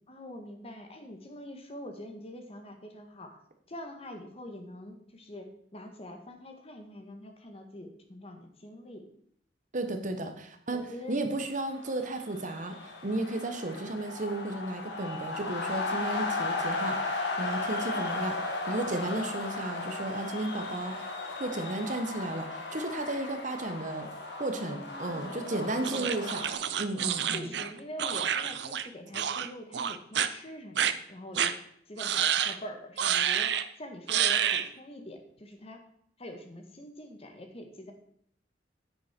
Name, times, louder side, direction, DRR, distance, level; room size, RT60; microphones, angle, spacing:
voice 1, 0.1-3.4 3.7-9.1 10.2-10.3 10.7-11.2 24.7-26.4 27.3-31.6 31.9-35.9 36.2-37.9, left 1 dB, 35° left, 4 dB, 1.6 m, -45 dB
voice 2, 9.7-10.8 11.1-24.1 24.4-26.4 26.8-27.5, right 2 dB, 45° right, 7 dB, 1.2 m, -34 dB
sound 1, 11.7-26.5, left 3 dB, 75° left, 2.1 m, -35 dB
sound 2, 25.8-28.9 29.1-29.5 29.7-30.3 30.8-30.9 31.4-31.5 32.0-32.6 33.0-33.7 34.1-34.7, right 9 dB, 70° right, 0.7 m, -28 dB
9.7 x 9.3 x 4.4 m, 0.67 s
head